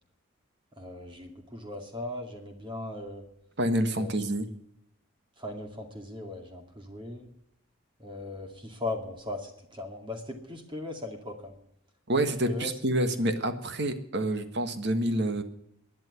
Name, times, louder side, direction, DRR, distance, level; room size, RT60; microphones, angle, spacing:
voice 1, 0.8-3.2 4.0-4.2 5.4-7.3 8.0-11.5 12.5-12.7, left 2 dB, 25° right, 4 dB, 2.4 m, -38 dB
voice 2, 3.6-4.5 12.1-15.4, right 1 dB, 55° right, 9 dB, 1.5 m, -27 dB
11.5 x 10.5 x 9.5 m, 0.77 s
head